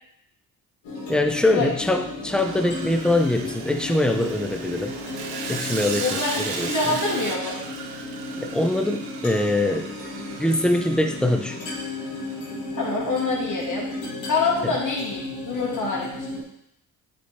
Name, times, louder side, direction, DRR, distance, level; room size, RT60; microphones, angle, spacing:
sound 1, 0.8-16.4, left 2 dB, 80° left, 2.6 m, -35 dB
voice 1, 1.1-5.0 5.5-6.7 8.4-10.0 10.4-11.7 14.6-14.7, left 1 dB, ahead, 6 dB, 0.8 m, -23 dB
Sawing, 2.3-12.6, right 5 dB, 55° right, 1.1 m, -36 dB
voice 2, 6.0-7.6 12.7-13.9 14.3-15.2 15.5-16.3, left 3 dB, 45° left, -4 dB, 2.5 m, -26 dB
9.5 x 4.4 x 3.3 m, 0.74 s
hypercardioid pair, 50°, 45 cm